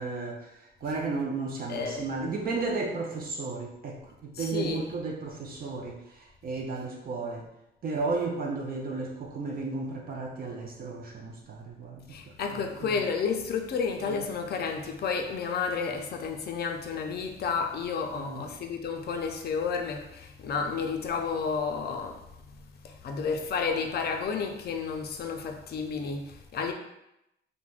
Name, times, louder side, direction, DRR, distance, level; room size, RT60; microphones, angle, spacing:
voice 1, 0.0-7.5 7.8-12.2 12.5-13.0 14.0-14.2 18.1-18.5, right 3 dB, 45° right, 0.5 m, -34 dB
voice 2, 1.7-2.1 4.3-4.9 12.1-26.7, left 5 dB, 55° left, 0.4 m, -31 dB
3.2 x 2.1 x 2.4 m
cardioid pair, 90°, 20 cm